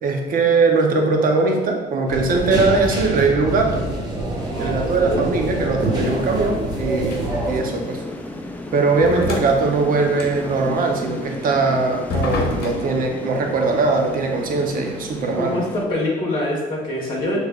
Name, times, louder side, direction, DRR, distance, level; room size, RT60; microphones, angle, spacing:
voice 1, 0.0-3.9 4.6-8.0 8.7-15.6, right 3 dB, 55° right, 2 dB, 0.8 m, -20 dB
sound 1, 2.1-2.5 2.9-3.2 4.7-6.7 7.1-7.5 8.2-8.3 9.0-10.6 12.1-13.1, left 3 dB, 65° left, 0.8 m, -30 dB
sound 2, 2.1-7.6, right 1 dB, 25° right, 1.0 m, -26 dB
sound 3, 4.3-15.8, left 1 dB, 10° left, 0.4 m, -34 dB
voice 2, 4.5-5.2 15.3-17.4, left 1 dB, 25° left, -5 dB, 1.4 m, -25 dB
6.4 x 3.3 x 2.4 m, 1.4 s
cardioid pair, 110°, 17 cm